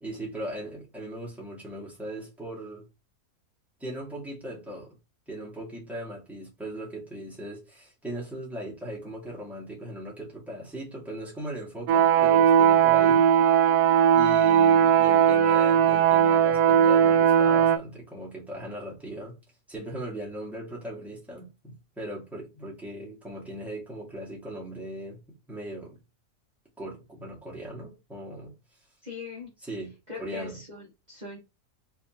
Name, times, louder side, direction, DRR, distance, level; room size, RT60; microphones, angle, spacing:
voice 1, 0.0-2.9 3.8-5.0 5.3-13.3 14.1-19.4 19.7-25.2 25.5-26.0 26.8-28.5 29.6-29.9 30.2-30.6, right 1 dB, ahead, 2.0 m, -38 dB
sound 1, 11.9-17.8, right 9 dB, 80° right, 1.1 m, -19 dB
voice 2, 29.0-29.5 30.1-31.4, left 4 dB, 30° right, 1.5 m, -40 dB
4.4 x 3.5 x 2.9 m
omnidirectional pair, 1.6 m